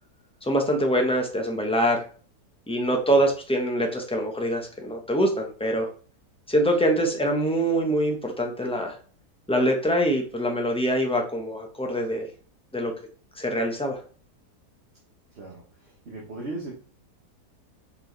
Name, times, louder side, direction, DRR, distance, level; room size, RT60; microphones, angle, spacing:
voice 1, 0.4-2.0 2.7-5.9 6.5-9.0 9.5-12.3 12.7-12.9 13.4-14.0, equal, 5° left, 2 dB, 0.8 m, -24 dB
voice 2, 15.3-16.7, right 2 dB, 45° right, -2 dB, 1.5 m, -38 dB
5.7 x 4.9 x 3.9 m, 0.41 s
omnidirectional pair, 1.7 m